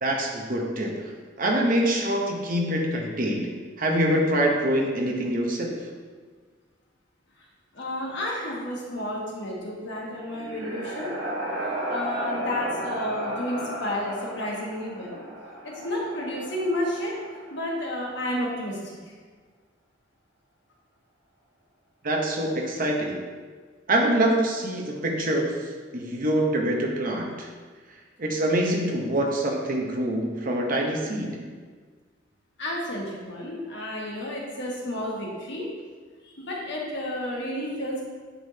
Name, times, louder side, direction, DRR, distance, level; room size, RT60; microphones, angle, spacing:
voice 1, 0.0-0.9 1.4-3.5 3.8-5.8 22.0-23.2 23.9-27.5 28.2-31.4, right 1 dB, 45° right, 0 dB, 0.8 m, -25 dB
voice 2, 7.7-11.1 11.5-15.2 15.6-17.1 17.5-19.1 32.6-35.7 36.2-38.0, left 1 dB, 65° left, -3 dB, 1.4 m, -31 dB
sound 1, 9.9-17.8, right 1 dB, 85° right, 1.3 m, -34 dB
9.6 x 3.6 x 2.8 m, 1.5 s
head